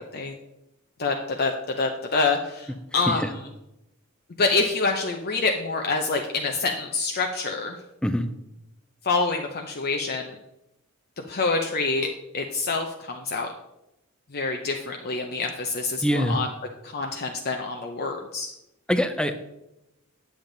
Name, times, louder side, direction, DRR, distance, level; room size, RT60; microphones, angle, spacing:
voice 1, 1.0-3.4 4.4-7.8 9.0-10.3 11.3-12.1 12.3-13.5 14.3-16.5 16.8-18.5, left 3 dB, 45° left, 3 dB, 0.6 m, -26 dB
voice 2, 16.0-16.4 18.9-19.3, equal, 5° left, 9 dB, 0.5 m, -23 dB
8.8 x 7.2 x 3.9 m, 0.88 s
head